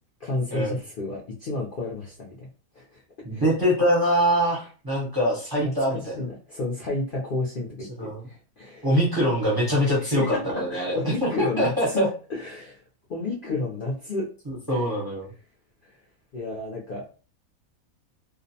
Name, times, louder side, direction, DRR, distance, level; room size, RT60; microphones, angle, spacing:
voice 1, 0.2-2.4 2.7-3.0 3.3-3.4 5.6-8.9 9.8-12.8 13.1-14.2 14.7-14.9 15.8-16.0 16.3-17.0, left 2 dB, 60° left, -3 dB, 0.6 m, -31 dB
voice 2, 3.2-6.1 8.0-8.3 8.8-12.1 14.5-15.3, equal, 20° right, -5 dB, 0.6 m, -24 dB
2.5 x 2.0 x 2.7 m, 0.36 s
omnidirectional pair, 1.5 m